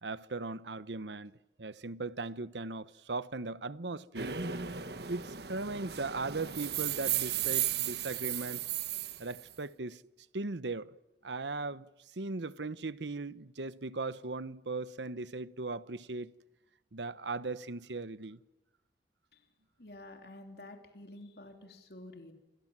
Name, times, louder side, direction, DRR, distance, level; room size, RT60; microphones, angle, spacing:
voice 1, 0.0-4.4 5.1-8.7 9.2-10.0 10.3-10.9 11.2-16.3 16.9-18.4, right 3 dB, 85° right, 1.0 m, -38 dB
sound 1, 4.1-9.5, right 10 dB, 70° right, 1.4 m, -35 dB
voice 2, 19.8-22.3, left 1 dB, 60° left, 3.5 m, -50 dB
28.5 x 26.0 x 7.5 m
head